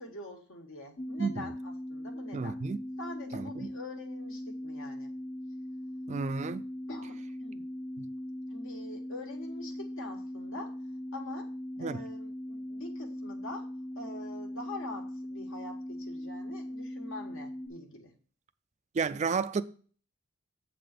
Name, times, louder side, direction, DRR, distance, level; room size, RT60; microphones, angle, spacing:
voice 1, 0.0-2.6 3.0-5.1 6.9-7.7 8.5-10.8 11.1-13.7 13.9-18.1, left 2 dB, 65° left, 1.4 m, -45 dB
sound 1, 1.0-17.7, left 1 dB, 50° left, 0.8 m, -40 dB
voice 2, 2.3-2.8 3.3-3.5 6.1-6.6 11.8-12.0 18.9-19.6, right 5 dB, 30° right, 0.3 m, -31 dB
7.6 x 3.9 x 6.5 m
head